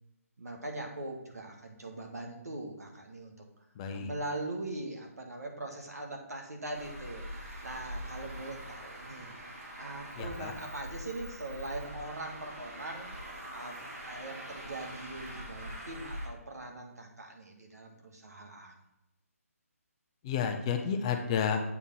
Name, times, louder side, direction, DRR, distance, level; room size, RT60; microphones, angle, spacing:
voice 1, 0.4-3.3 3.9-9.3 9.7-13.1 13.5-13.7 14.0-18.7, right 2 dB, 85° right, 2 dB, 1.9 m, -41 dB
voice 2, 3.8-4.1 10.2-10.5 20.2-21.6, left 7 dB, 20° left, 5 dB, 0.6 m, -31 dB
Traffic noise roadway noise, 6.7-16.3, equal, 70° right, 2.6 m, -43 dB
8.1 x 3.6 x 5.7 m, 0.91 s
hypercardioid pair, 160°, 8 cm